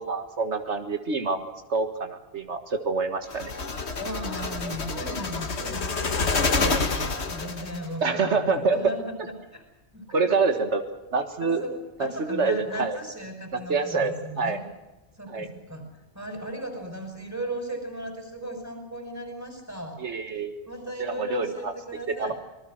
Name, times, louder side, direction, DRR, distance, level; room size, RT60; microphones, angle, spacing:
voice 1, 0.0-3.5 8.0-8.8 10.1-10.8 11.1-11.6 12.0-13.0 13.5-14.6 15.3-15.5 20.0-20.6 21.0-21.7 22.1-22.3, right 4 dB, 90° right, 7 dB, 1.9 m, -26 dB
sound 1, 3.3-7.9, left 3 dB, 75° left, 1.9 m, -28 dB
voice 2, 4.0-9.7 9.9-10.0 11.4-11.7 12.0-14.6 15.2-15.9 16.1-20.0 20.7-22.3, right 1 dB, 15° right, 4 dB, 5.2 m, -36 dB
26.5 x 19.5 x 6.4 m, 0.99 s
omnidirectional pair, 1.1 m